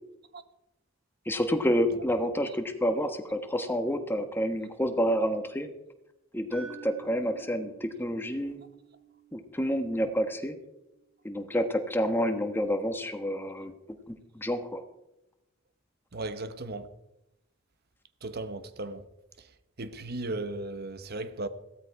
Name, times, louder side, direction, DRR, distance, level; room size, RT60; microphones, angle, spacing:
voice 1, 1.3-5.7 6.3-8.6 9.3-10.6 11.2-13.7 14.1-14.8, equal, 10° left, 1.2 m, -29 dB
sound 1, 6.5-10.6, right 6 dB, 10° right, 4.9 m, -50 dB
voice 2, 16.1-16.9 18.2-19.0 19.8-21.5, right 2 dB, 50° right, 1.0 m, -36 dB
16.0 x 13.0 x 4.7 m
head